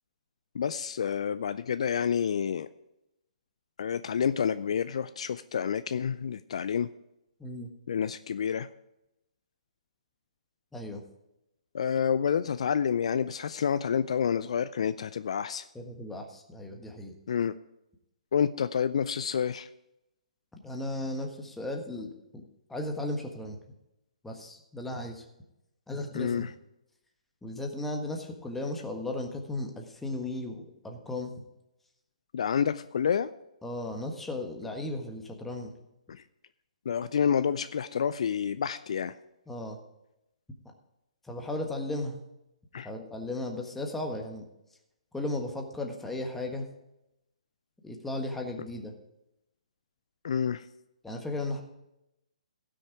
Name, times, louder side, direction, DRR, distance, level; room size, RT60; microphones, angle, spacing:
voice 1, 0.5-2.7 3.8-6.9 7.9-8.7 11.7-15.6 17.3-17.5 18.3-19.7 26.1-26.5 32.3-33.3 36.1-36.2 36.9-39.2 42.7-42.9 50.2-50.6, left 7 dB, 55° left, 13 dB, 0.4 m, -29 dB
voice 2, 10.7-11.0 15.7-17.1 20.6-22.4 22.7-23.6 24.2-25.2 25.9-26.5 27.4-31.3 33.6-35.7 39.5-39.8 41.2-42.2 42.8-44.4 45.1-46.7 47.8-48.9 51.0-51.6, left 2 dB, 5° left, 2 dB, 1.5 m, -35 dB
16.5 x 6.4 x 4.7 m, 0.88 s
figure-of-eight pair, 130°, 4 cm